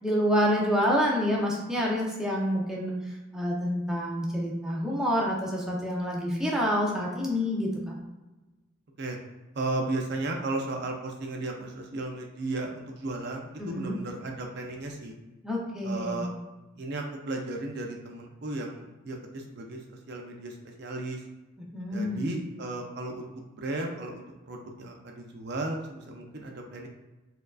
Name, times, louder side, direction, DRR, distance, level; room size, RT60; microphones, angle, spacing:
voice 1, 0.0-7.9 13.6-14.0 15.4-16.3 21.6-22.2, equal, 5° right, -4 dB, 0.6 m, -28 dB
voice 2, 9.6-15.1 15.8-16.3 16.8-21.2 21.9-23.3 23.5-26.9, right 2 dB, 55° right, 2 dB, 0.5 m, -35 dB
4.4 x 2.5 x 2.3 m, 1.1 s
head